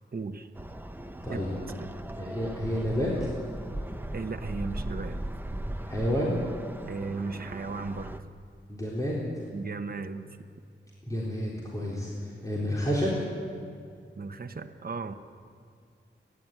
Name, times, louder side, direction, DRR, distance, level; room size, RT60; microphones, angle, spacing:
voice 1, 0.1-0.5 1.3-1.4 1.8-1.9 4.1-5.2 6.9-8.2 9.5-10.5 14.1-15.2, right 4 dB, 50° right, 6 dB, 1.1 m, -36 dB
sound 1, 0.5-8.2, right 1 dB, 10° right, 1.0 m, -38 dB
voice 2, 2.2-3.3 5.9-6.4 8.7-9.2 11.0-13.1, equal, 15° left, -5 dB, 3.9 m, -29 dB
29.5 x 11.5 x 9.2 m, 2.3 s
wide cardioid pair, 95°, 20 cm